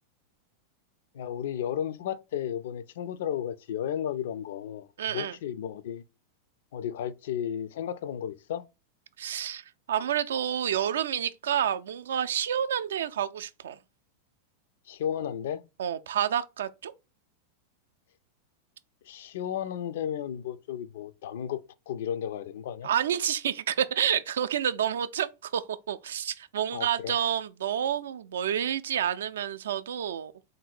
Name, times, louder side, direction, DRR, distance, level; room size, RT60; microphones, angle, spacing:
voice 1, 1.1-4.9 5.1-6.0 6.7-8.7 14.9-15.6 19.1-22.9 26.7-27.2, left 9 dB, 55° left, 0.4 m, -33 dB
voice 2, 5.0-5.4 9.2-13.8 15.8-16.9 22.8-30.3, right 9 dB, 60° right, 0.4 m, -29 dB
3.7 x 2.6 x 4.2 m
figure-of-eight pair, 90°, 0 cm